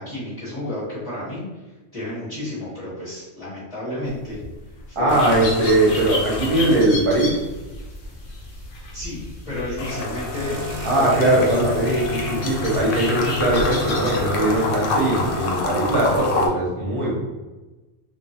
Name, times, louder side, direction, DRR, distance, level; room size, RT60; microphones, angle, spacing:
voice 1, 0.0-1.4 1.9-4.4 4.9-5.2 8.9-10.6 11.0-11.7, left 1 dB, 30° left, -10 dB, 1.0 m, -31 dB
sound 1, 4.1-4.5 4.8-7.4 7.7-16.5, left 3 dB, 80° left, 0.9 m, -29 dB
voice 2, 4.9-7.4 10.8-17.1, right 1 dB, 30° right, -5 dB, 0.9 m, -20 dB
sound 2, 5.2-14.2, left 2 dB, 50° left, 0.7 m, -34 dB
sound 3, 10.3-15.6, left 3 dB, 85° right, 1.0 m, -33 dB
2.9 x 2.6 x 2.7 m, 1.2 s
omnidirectional pair, 1.3 m